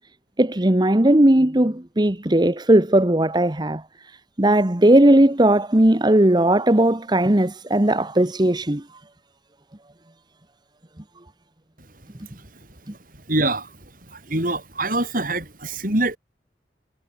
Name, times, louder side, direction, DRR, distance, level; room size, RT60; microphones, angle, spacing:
voice 1, 0.4-3.8 4.4-8.8, right 1 dB, 25° right, 1.2 m, -17 dB
voice 2, 13.3-13.7 14.1-16.2, right 2 dB, 50° right, 7.1 m, -24 dB
head